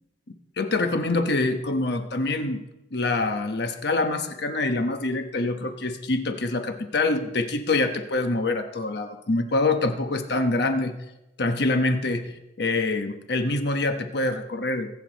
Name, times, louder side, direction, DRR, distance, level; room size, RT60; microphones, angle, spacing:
voice 1, 0.6-2.6 2.9-10.9 11.4-14.9, left 2 dB, 65° left, 6 dB, 1.1 m, -25 dB
21.5 x 8.4 x 4.1 m, 0.95 s
head